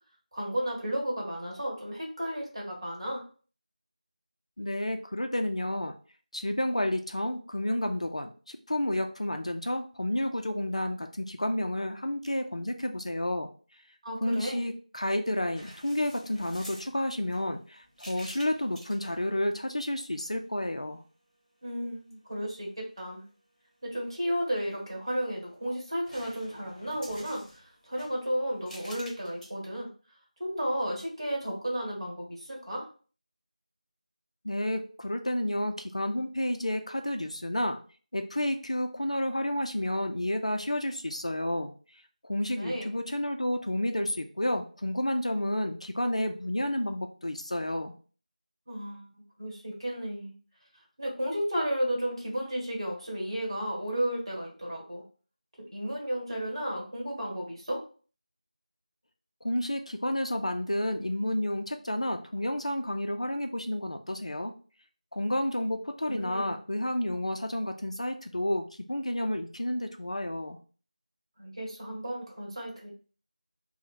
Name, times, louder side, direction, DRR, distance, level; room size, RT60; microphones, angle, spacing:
voice 1, 0.3-3.2 14.0-14.6 21.6-23.2 23.8-29.9 30.4-32.9 42.6-42.9 48.7-50.4 51.0-55.0 55.7-57.8 66.0-66.5 71.4-72.9, equal, 40° right, -3 dB, 1.2 m, -33 dB
voice 2, 4.6-5.9 6.3-13.5 14.2-21.0 34.4-37.8 38.1-41.7 42.2-47.9 59.4-64.5 65.1-70.6, left 1 dB, 55° left, 6 dB, 0.4 m, -30 dB
sound 1, 15.6-19.3 20.2-20.6 24.8-25.6 26.0-29.5, equal, ahead, 0.6 m, -50 dB
2.8 x 2.1 x 4.0 m, 0.39 s
figure-of-eight pair, 175°, 4 cm